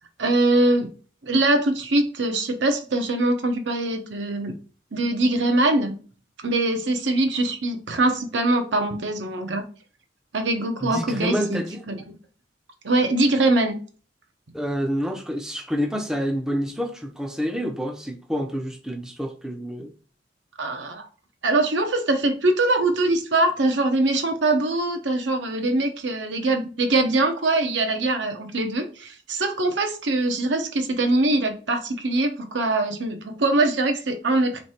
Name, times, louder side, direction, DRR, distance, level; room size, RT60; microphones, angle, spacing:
voice 1, 0.2-0.9 1.2-4.5 4.9-6.0 6.4-9.6 10.3-12.0 12.8-13.8 20.6-21.1 21.4-34.6, right 2 dB, 75° right, 0.8 m, -22 dB
voice 2, 10.8-11.8 14.5-19.9, equal, 5° right, 0.5 m, -28 dB
3.2 x 3.2 x 4.2 m
head